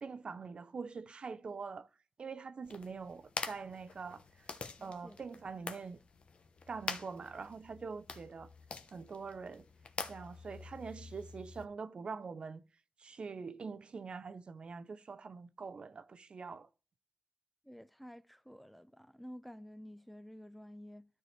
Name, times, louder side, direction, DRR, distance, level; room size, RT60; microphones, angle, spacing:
voice 1, 0.0-1.9 2.2-4.5 4.8-6.0 6.7-8.5 8.9-9.7 10.1-12.6 13.0-16.7, right 5 dB, 50° right, 0.5 m, -44 dB
sound 1, 2.6-11.6, left 4 dB, 60° left, 1.0 m, -46 dB
voice 2, 4.8-5.2 17.6-21.1, equal, ahead, 0.6 m, -51 dB
12.5 x 4.6 x 3.2 m
cardioid pair, 80°, 2 cm